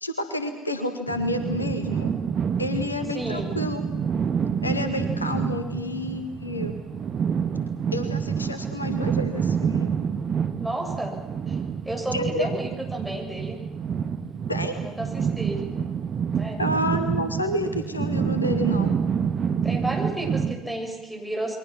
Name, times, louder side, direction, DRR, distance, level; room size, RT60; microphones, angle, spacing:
voice 1, 0.0-2.1 2.6-3.8 4.6-6.8 7.9-9.9 12.1-12.5 14.5-14.8 16.6-19.0, left 1 dB, 85° left, 8 dB, 1.6 m, -29 dB
sound 1, 1.1-20.6, right 7 dB, 40° right, 1.6 m, -28 dB
voice 2, 3.1-3.5 10.6-11.2 11.5-11.6 11.8-13.6 14.8-15.6 16.4-16.6 19.6-21.5, right 1 dB, 5° right, 0 dB, 7.2 m, -32 dB
29.0 x 22.5 x 6.1 m, 1.1 s
figure-of-eight pair, 60°, 0 cm